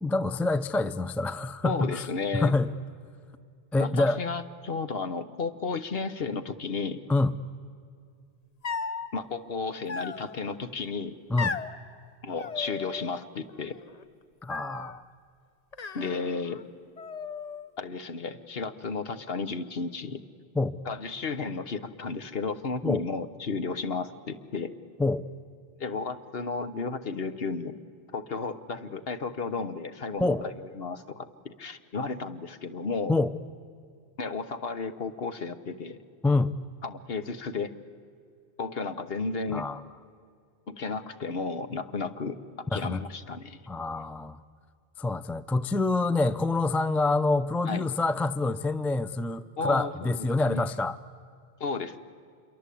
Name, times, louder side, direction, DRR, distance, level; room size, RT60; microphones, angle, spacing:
voice 1, 0.0-2.1 2.3-2.7 3.7-4.2 7.1-7.3 11.3-11.6 14.4-15.0 20.5-20.8 22.8-23.0 25.0-25.2 30.2-30.4 33.1-33.3 36.2-36.5 39.5-39.8 42.7-43.0 43.7-44.4 45.0-51.0, left 3 dB, ahead, 14 dB, 0.4 m, -26 dB
voice 2, 1.6-2.5 3.8-7.0 9.1-11.1 12.2-13.8 15.9-16.6 17.8-20.2 20.8-24.7 25.8-27.8 28.1-33.1 34.2-36.0 36.8-37.7 38.6-39.7 40.7-42.4 42.7-43.6 47.7-47.8 49.6-50.7 51.6-52.0, left 4 dB, 65° left, 11 dB, 1.3 m, -33 dB
sound 1, 8.6-9.1 9.9-10.6 11.4-11.7 12.4-13.2 13.5-14.0 14.5-15.0 15.7-16.6 17.0-17.7, left 5 dB, 40° left, 0.9 m, -36 dB
26.5 x 23.0 x 8.4 m, 2.3 s
omnidirectional pair, 1.1 m